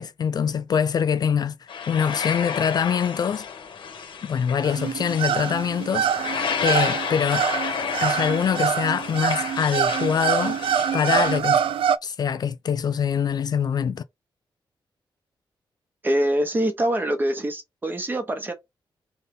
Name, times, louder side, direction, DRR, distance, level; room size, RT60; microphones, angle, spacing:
voice 1, 0.0-1.5 1.9-3.5 4.2-6.1 6.6-7.5 8.0-10.6 10.9-11.6 12.0-14.0, left 7 dB, 50° left, 0.4 m, -24 dB
sound 1, 1.7-11.4, left 6 dB, 70° left, 1.3 m, -31 dB
sound 2, 4.6-12.0, right 8 dB, 85° right, 0.4 m, -25 dB
voice 2, 16.0-18.5, right 1 dB, 20° right, 1.1 m, -24 dB
4.0 x 3.5 x 3.8 m
wide cardioid pair, 155°, 9 cm